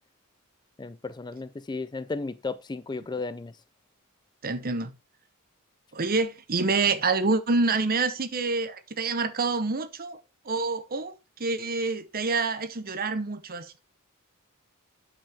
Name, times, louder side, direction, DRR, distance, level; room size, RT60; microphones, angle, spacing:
voice 1, 0.8-3.6, left 3 dB, 20° left, 0.4 m, -34 dB
voice 2, 4.4-4.9 5.9-10.2 10.4-13.8, right 3 dB, 45° right, 0.9 m, -27 dB
8.8 x 7.6 x 3.5 m
head